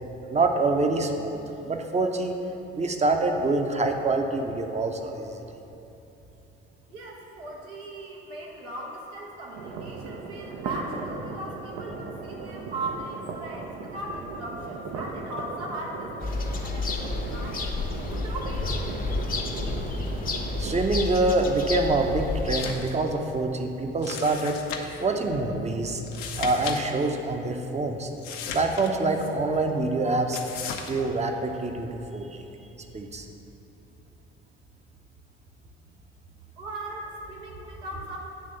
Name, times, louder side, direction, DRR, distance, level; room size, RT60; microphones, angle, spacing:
voice 1, 0.3-2.4 2.7-5.3 20.6-24.6 25.0-26.0 26.4-28.1 28.5-30.5 30.9-32.4 32.9-33.2, right 2 dB, 20° right, 4 dB, 0.8 m, -26 dB
voice 2, 6.9-17.7 18.2-19.1 36.6-38.2, right 2 dB, 80° right, -3 dB, 1.2 m, -38 dB
sound 1, 9.5-20.8, right 4 dB, 65° right, 0.7 m, -37 dB
sound 2, 16.2-22.6, left 3 dB, 30° left, 0.8 m, -30 dB
sound 3, 22.4-22.9 23.2-23.3 24.0-25.0 26.0-26.8 27.0-27.1 28.2-29.3 30.3-30.9, left 6 dB, 70° left, 0.8 m, -36 dB
8.6 x 3.4 x 6.5 m, 2.9 s
hypercardioid pair, 55°, 30 cm